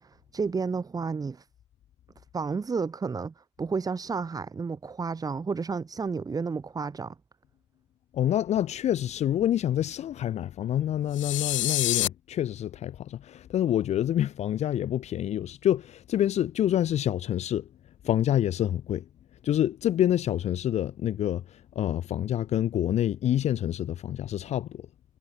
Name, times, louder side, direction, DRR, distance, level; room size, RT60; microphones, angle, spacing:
voice 1, 0.0-1.4 2.3-7.1, right 5 dB, 25° right, 4.3 m, -31 dB
voice 2, 8.1-17.7 18.0-19.1 19.4-24.9, left 11 dB, 45° left, 1.9 m, -27 dB
sound 1, 11.1-12.1, left 16 dB, 80° left, 0.9 m, -27 dB
hypercardioid pair, 80°, 16 cm